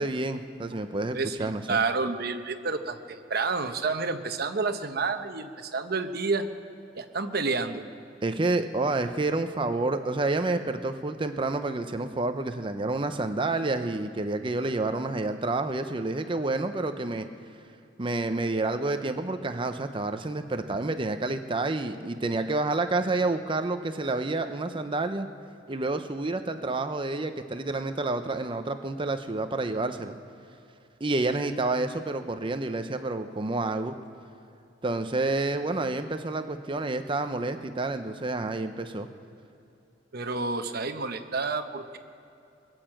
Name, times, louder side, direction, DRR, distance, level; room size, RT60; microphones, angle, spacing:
voice 1, 0.0-1.8 8.2-17.3 18.0-25.3 25.7-30.2 31.0-33.9 34.8-39.1, right 2 dB, 30° right, 8 dB, 0.7 m, -29 dB
voice 2, 1.1-6.5 6.9-7.8 40.1-42.0, right 4 dB, 60° right, 7 dB, 0.9 m, -29 dB
21.0 x 9.0 x 7.6 m, 2.7 s
head